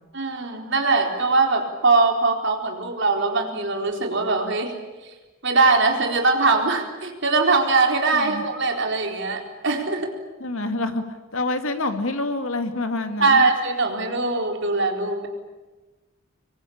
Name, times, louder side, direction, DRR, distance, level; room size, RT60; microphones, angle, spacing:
voice 1, 0.1-4.8 5.4-10.1 13.2-15.3, right 3 dB, 60° right, 3 dB, 4.2 m, -21 dB
voice 2, 8.1-8.4 10.4-11.0 11.3-13.5, left 2 dB, 80° left, 7 dB, 2.5 m, -27 dB
26.0 x 23.0 x 8.8 m, 1.2 s
head